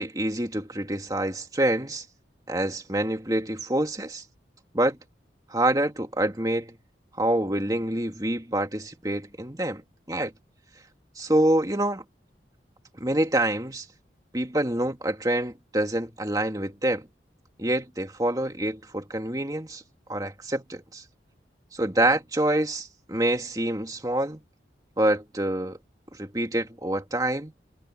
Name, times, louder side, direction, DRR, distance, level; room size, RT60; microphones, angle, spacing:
voice 1, 0.0-2.0 2.5-4.2 4.7-5.0 5.5-6.7 7.2-9.8 10.1-10.3 11.2-12.0 13.0-13.9 14.3-17.1 17.6-19.8 20.1-21.0 21.7-24.4 25.0-25.8 26.2-27.5, right 1 dB, 20° right, 2.2 m, -26 dB
head